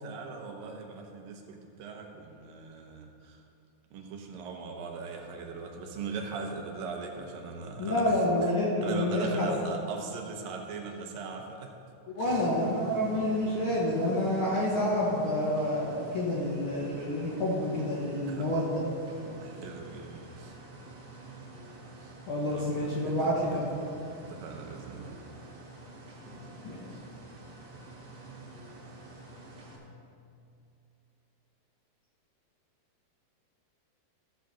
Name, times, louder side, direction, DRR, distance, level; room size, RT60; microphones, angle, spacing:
voice 1, 0.0-3.4 3.9-8.5 8.8-11.7 12.2-12.5 14.5-14.6 18.3-18.5 19.4-20.6 22.0-22.1 22.5-23.6 24.3-25.2, right 4 dB, 75° right, 2 dB, 2.6 m, -40 dB
voice 2, 7.8-9.5 12.2-18.7 22.3-23.6 26.6-26.8, left 1 dB, 50° left, -6 dB, 1.7 m, -28 dB
sound 1, 12.2-29.8, right 2 dB, 35° right, 2.3 m, -48 dB
14.5 x 5.2 x 6.9 m, 2.6 s
omnidirectional pair, 4.2 m